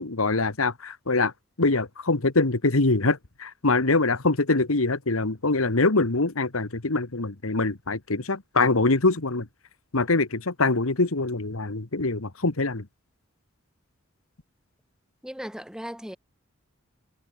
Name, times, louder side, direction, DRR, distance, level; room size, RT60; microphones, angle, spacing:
voice 1, 0.0-1.3 1.6-9.5 9.9-12.8, left 3 dB, 85° left, 1.7 m, -24 dB
voice 2, 15.2-16.2, equal, 5° right, 2.4 m, -37 dB
head